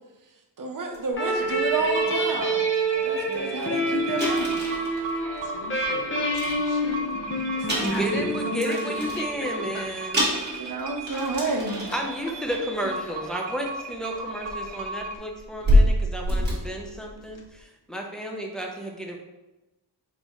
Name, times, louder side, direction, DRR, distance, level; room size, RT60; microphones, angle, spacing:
voice 1, 0.6-2.6 3.0-4.6 7.7-8.1 10.6-11.8, right 3 dB, 50° right, 3 dB, 0.7 m, -30 dB
sound 1, 0.9-1.0 1.5-1.7 2.4-2.5 2.7-2.9 3.3-3.4 3.6-3.7 4.2-5.9 6.3-7.2 7.6-9.3 9.8-9.9 10.1-12.1 12.5-12.8 13.9-14.0 14.4-17.4, equal, 25° right, 1.2 m, -26 dB
sound 2, 1.1-9.6, right 1 dB, 30° left, 0.8 m, -27 dB
sound 3, 1.9-15.2, right 3 dB, 90° right, 0.6 m, -37 dB
voice 2, 5.4-7.1 7.3-10.1 10.5-11.3, left 3 dB, 85° left, 2 dB, 0.8 m, -39 dB
voice 3, 7.8-10.7 11.9-19.2, equal, ahead, 0 dB, 0.5 m, -32 dB
4.0 x 4.0 x 3.0 m, 1.0 s
wide cardioid pair, 140°, 43 cm